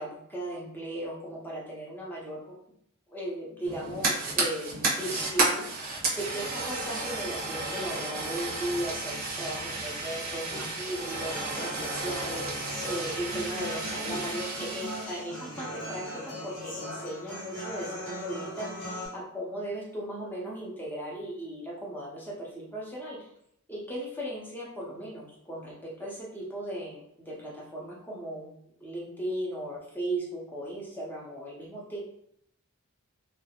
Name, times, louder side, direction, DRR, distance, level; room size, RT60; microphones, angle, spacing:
voice 1, 0.0-2.5 3.1-23.3 23.7-32.1, right 1 dB, 10° left, -4 dB, 0.6 m, -37 dB
Fire, 3.6-15.2, right 3 dB, 40° right, 0.6 m, -32 dB
Human voice / Acoustic guitar, 11.1-19.1, equal, 85° left, 1.0 m, -39 dB
2.3 x 2.0 x 2.8 m, 0.73 s
head